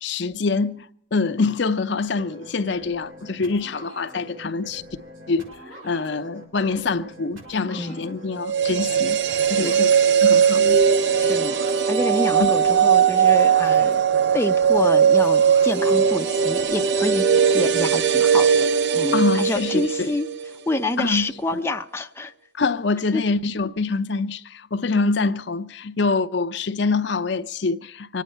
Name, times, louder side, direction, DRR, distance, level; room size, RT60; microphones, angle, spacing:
voice 1, 0.0-4.8 5.3-5.5 5.8-9.2 9.5-10.8 12.4-12.5 19.1-20.2 21.0-21.3 22.6-28.2, left 4 dB, 60° left, 0.6 m, -25 dB
sound 1, 2.1-17.7, right 1 dB, 85° right, 6.5 m, -43 dB
voice 2, 7.7-8.1 9.6-9.8 11.1-11.5 11.9-14.0 14.3-17.3 17.5-18.5 18.9-20.3 20.7-22.3 23.1-23.2, left 1 dB, 15° left, 0.6 m, -27 dB
sound 2, 8.4-20.5 20.8-20.9, right 7 dB, 60° right, 0.6 m, -19 dB
24.5 x 9.3 x 5.5 m
head